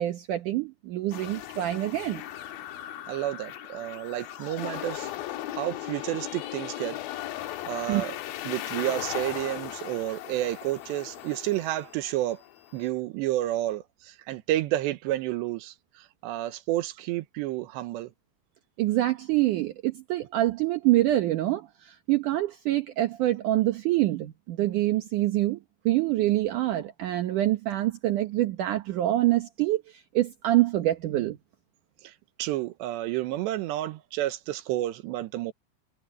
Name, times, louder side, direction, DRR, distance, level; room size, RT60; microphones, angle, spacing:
voice 1, 0.0-2.2 7.9-8.0 18.8-25.6 25.9-29.8 30.1-31.4, right 15 dB, 70° right, 2.0 m, -25 dB
sound 1, 1.1-12.9, left 13 dB, 70° left, 2.6 m, -38 dB
voice 2, 3.1-5.1 5.5-7.0 7.7-8.2 8.4-12.4 12.7-18.1 32.0-32.1 32.4-35.5, right 14 dB, 85° right, 3.1 m, -30 dB
omnidirectional pair, 5.0 m